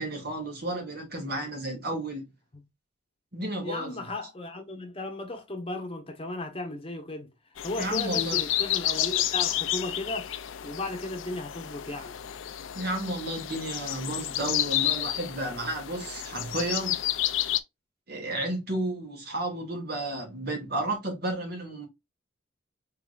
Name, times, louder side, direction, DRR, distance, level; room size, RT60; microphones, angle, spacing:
voice 1, 0.0-2.3 3.3-4.1 7.7-8.4 12.7-17.0 18.1-21.9, right 1 dB, 50° right, 2.0 m, -32 dB
voice 2, 3.6-7.3 7.6-10.3 10.6-12.2, left 2 dB, 30° left, 0.9 m, -35 dB
sound 1, 7.6-17.6, left 13 dB, 85° left, 0.5 m, -30 dB
4.9 x 3.7 x 2.4 m
head